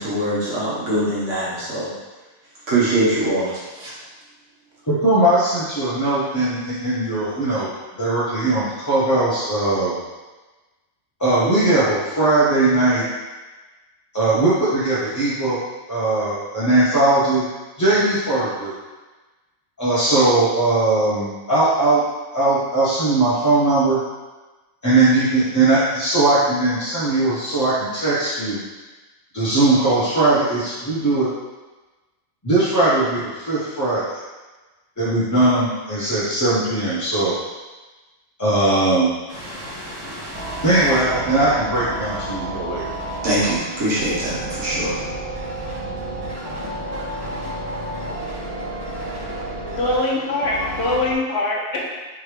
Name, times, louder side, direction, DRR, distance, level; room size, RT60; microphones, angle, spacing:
voice 1, 0.0-1.9 2.7-3.9 43.2-45.0, right 1 dB, 85° right, -8 dB, 1.6 m, -22 dB
voice 2, 4.9-7.7 8.0-10.0 11.2-13.0 14.1-15.6 15.9-17.4 17.8-18.7 19.8-22.0 22.3-24.0 24.8-28.6 29.3-31.3 32.4-34.2 35.0-37.4 38.4-39.1 40.6-42.8, right 2 dB, 15° left, -12 dB, 0.8 m, -19 dB
sound 1, 39.3-51.1, right 1 dB, 30° right, 1.4 m, -30 dB
voice 3, 49.7-51.9, left 2 dB, 60° left, -2 dB, 1.0 m, -23 dB
4.6 x 3.6 x 3.2 m, 1.2 s
omnidirectional pair, 1.2 m